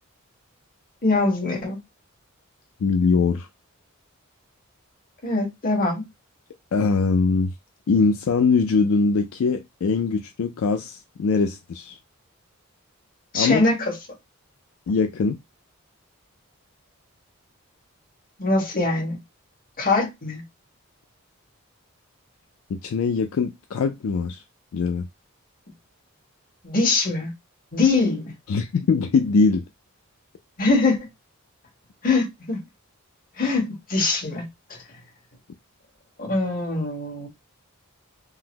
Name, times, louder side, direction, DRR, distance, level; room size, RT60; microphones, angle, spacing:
voice 1, 1.0-1.8 5.2-6.0 13.3-13.9 18.4-19.2 19.8-20.4 26.6-27.3 27.7-28.3 30.6-31.0 32.0-32.6 33.4-34.4 34.7-34.8 36.2-37.3, left 3 dB, 40° left, 1.4 m, -22 dB
voice 2, 2.8-3.5 6.7-7.5 7.9-12.0 13.3-13.6 14.9-15.4 22.7-24.4 24.7-25.1 28.5-29.7, left 4 dB, 75° left, 0.3 m, -22 dB
3.8 x 2.0 x 2.8 m
head